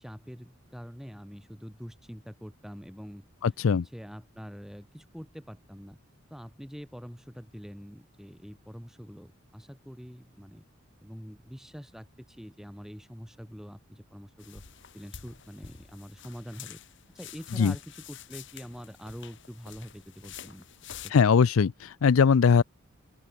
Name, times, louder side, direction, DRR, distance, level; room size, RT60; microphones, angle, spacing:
voice 1, 0.0-3.2 3.9-6.0 6.3-10.6 11.0-14.6 14.9-16.8 17.1-20.6 21.0-21.1, equal, ahead, 6.0 m, -45 dB
voice 2, 3.4-3.8 17.6-17.7 21.1-22.6, left 6 dB, 75° left, 0.4 m, -21 dB
sound 1, 14.4-21.1, left 9 dB, 60° left, 1.4 m, -47 dB
open air
head